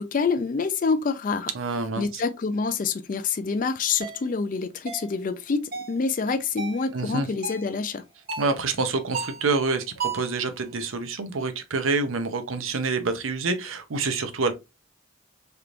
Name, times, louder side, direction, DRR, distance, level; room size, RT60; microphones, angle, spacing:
voice 1, 0.0-1.5 2.0-8.0, left 4 dB, 40° left, 0.3 m, -27 dB
voice 2, 1.5-2.2 6.9-7.3 8.4-14.5, right 3 dB, 90° right, 0.7 m, -27 dB
sound 1, 4.0-4.2 4.9-5.1 5.7-6.0 6.6-6.8 7.4-7.7 8.3-8.6 9.1-9.5 10.0-10.4, right 5 dB, 45° right, 0.7 m, -33 dB
3.4 x 2.5 x 2.8 m
head